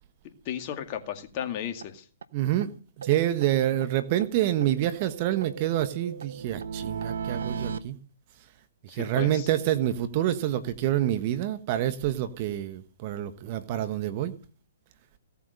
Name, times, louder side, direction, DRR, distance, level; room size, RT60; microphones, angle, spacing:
voice 1, 0.5-2.1 8.9-9.5, left 9 dB, 40° left, 2.1 m, -34 dB
sound 1, 1.4-1.5 1.8-1.9 2.2-2.3 2.6-2.7 3.0-4.3 4.6-7.8, right 6 dB, 75° right, 0.9 m, -37 dB
voice 2, 2.3-2.7 3.0-8.0 8.8-14.3, right 12 dB, 40° right, 1.3 m, -27 dB
17.0 x 8.4 x 6.6 m
hypercardioid pair, 135°, 0 cm